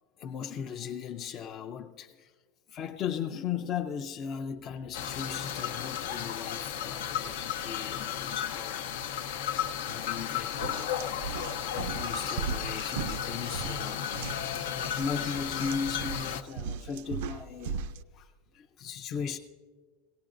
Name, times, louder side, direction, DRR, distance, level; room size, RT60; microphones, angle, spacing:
voice 1, 0.2-2.3 2.7-8.8 9.4-9.6 9.9-17.8 18.1-19.4, left 7 dB, 30° left, 4 dB, 0.4 m, -38 dB
sound 1, 4.9-16.4, left 9 dB, 80° left, 0.7 m, -34 dB
sound 2, 9.9-10.1 10.5-18.0, right 6 dB, 65° right, 0.4 m, -38 dB
18.0 x 18.0 x 2.6 m, 1.5 s
supercardioid pair, 160°, 0 cm